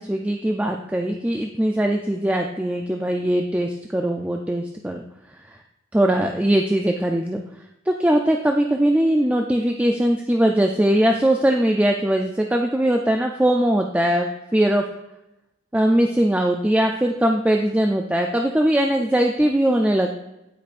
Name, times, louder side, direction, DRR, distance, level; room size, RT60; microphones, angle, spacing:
voice 1, 0.0-5.0 5.5-5.6 5.9-7.4 7.9-14.8 15.7-20.1, right 1 dB, 5° right, 2 dB, 0.4 m, -20 dB
15.5 x 5.2 x 2.5 m, 0.93 s
head